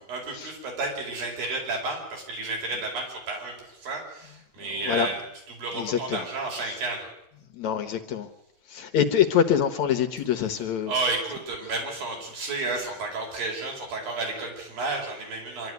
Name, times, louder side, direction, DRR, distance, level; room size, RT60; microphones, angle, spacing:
voice 1, 0.0-5.2 5.6-7.1 10.9-15.7, right 3 dB, 80° right, 1 dB, 6.8 m, -31 dB
voice 2, 5.7-6.2 6.6-6.7 7.6-8.3 8.7-10.9, left 8 dB, 65° left, 9 dB, 2.1 m, -25 dB
25.0 x 12.0 x 9.4 m, 0.82 s
omnidirectional pair, 4.0 m